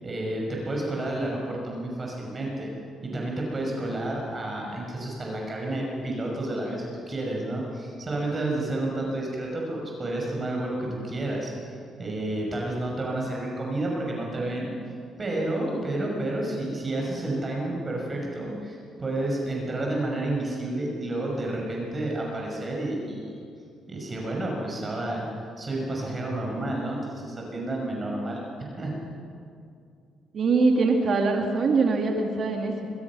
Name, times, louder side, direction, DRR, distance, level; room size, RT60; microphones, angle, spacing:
voice 1, 0.0-2.7 3.0-14.7 15.2-23.3 23.9-25.2 25.6-28.5 28.8-28.9, right 1 dB, 35° right, -1 dB, 6.2 m, -30 dB
voice 2, 30.3-32.9, right 3 dB, 55° right, 2 dB, 2.3 m, -23 dB
23.0 x 21.0 x 6.2 m, 2.4 s
supercardioid pair, 65°, 0 cm